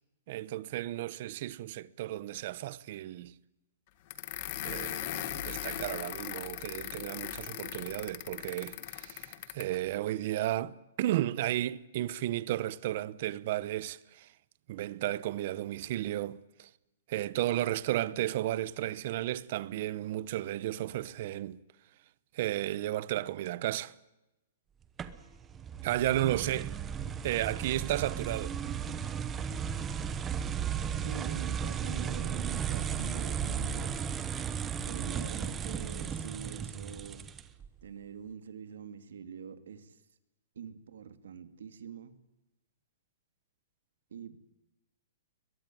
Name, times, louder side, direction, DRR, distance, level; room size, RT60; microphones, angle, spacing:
voice 1, 0.3-3.3 4.6-14.3 14.7-16.7 17.1-21.6 22.3-23.9 25.8-26.7 27.2-28.5, right 14 dB, 40° right, 0.9 m, -33 dB
sound 1, 4.1-9.8, left 13 dB, 35° left, 1.7 m, -39 dB
sound 2, 25.0-37.7, right 7 dB, 10° right, 1.0 m, -35 dB
voice 2, 31.0-34.0 34.9-37.2 37.8-40.0 40.6-42.2 44.1-44.4, right 7 dB, 80° right, 2.5 m, -45 dB
22.0 x 22.0 x 9.2 m
hypercardioid pair, 170°, 0 cm